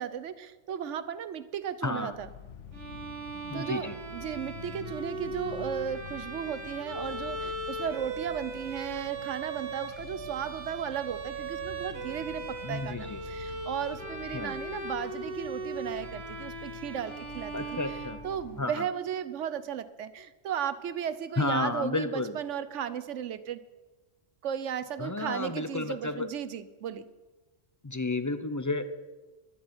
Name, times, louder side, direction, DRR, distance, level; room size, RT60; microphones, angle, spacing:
voice 1, 0.0-2.3 3.5-17.5 18.2-23.6 24.4-27.1, right 8 dB, 75° right, 14 dB, 1.1 m, -35 dB
voice 2, 1.8-2.1 3.5-4.0 12.6-13.2 14.3-14.5 17.5-18.2 18.6-18.9 21.4-22.4 25.0-26.3 27.8-28.8, left 2 dB, 20° left, 11 dB, 0.5 m, -31 dB
sound 1, 2.1-18.6, left 7 dB, 75° left, 1.2 m, -47 dB
Bowed string instrument, 2.7-18.7, right 3 dB, 55° right, 1.8 m, -39 dB
12.0 x 8.4 x 9.5 m, 1.2 s
omnidirectional pair, 1.3 m